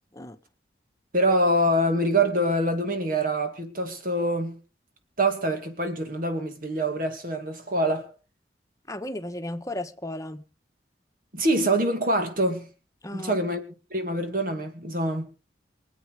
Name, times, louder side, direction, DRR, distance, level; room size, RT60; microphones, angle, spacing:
voice 1, 1.1-4.6 5.2-8.1 11.3-12.7 13.1-13.6 13.9-15.3, right 1 dB, 50° right, 2.3 m, -25 dB
voice 2, 8.9-10.4 13.0-13.4, left 1 dB, 20° left, 1.3 m, -34 dB
24.5 x 8.6 x 4.8 m
head